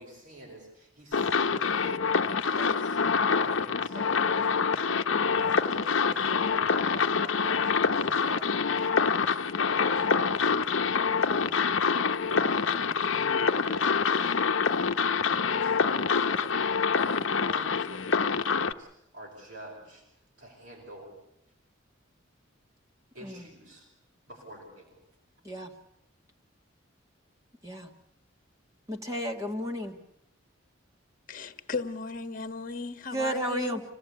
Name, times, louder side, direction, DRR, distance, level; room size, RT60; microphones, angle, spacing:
voice 1, 0.0-4.9 5.2-11.3 12.3-14.4 15.3-20.0 20.4-21.1 23.1-23.9 24.3-25.0, right 1 dB, 65° right, -4 dB, 5.2 m, -46 dB
sound 1, 1.1-18.7, left 5 dB, 75° left, 0.8 m, -26 dB
voice 2, 28.9-30.0 33.1-33.8, right 1 dB, 15° right, 3 dB, 1.5 m, -32 dB
voice 3, 31.3-33.8, left 4 dB, 40° left, 8 dB, 1.4 m, -35 dB
26.5 x 17.0 x 8.3 m, 0.84 s
head